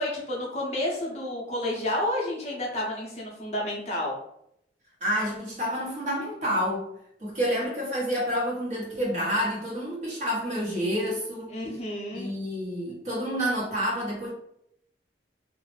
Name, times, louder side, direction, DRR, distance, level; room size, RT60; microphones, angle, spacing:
voice 1, 0.0-4.1 11.5-12.3, left 1 dB, 35° left, -3 dB, 0.5 m, -30 dB
voice 2, 5.0-6.9 7.2-11.5 12.1-14.3, equal, 40° right, -5 dB, 0.9 m, -28 dB
2.3 x 2.0 x 3.1 m, 0.75 s
head